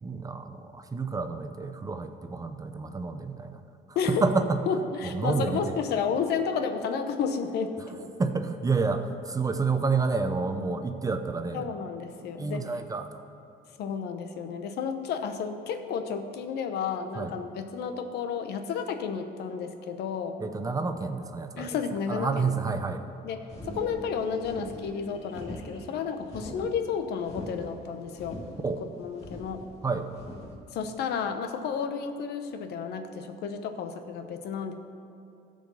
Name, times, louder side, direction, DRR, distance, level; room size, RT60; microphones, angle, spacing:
voice 1, 0.0-3.6 4.1-4.6 5.0-5.8 8.2-11.7 12.4-13.2 17.2-17.3 20.4-21.8 22.1-23.0 28.6-28.8 29.8-30.1, right 4 dB, 20° right, 8 dB, 0.7 m, -29 dB
voice 2, 4.7-8.1 11.5-12.6 13.8-20.4 21.6-22.5 23.2-28.4 29.0-29.6 30.7-34.7, left 6 dB, 75° left, 7 dB, 0.9 m, -32 dB
sound 1, 23.5-30.5, left 1 dB, 40° left, 2.0 m, -43 dB
Bass guitar, 23.6-27.7, right 4 dB, 60° right, 0.7 m, -49 dB
13.5 x 5.0 x 6.9 m, 2.9 s
cardioid pair, 110°, 17 cm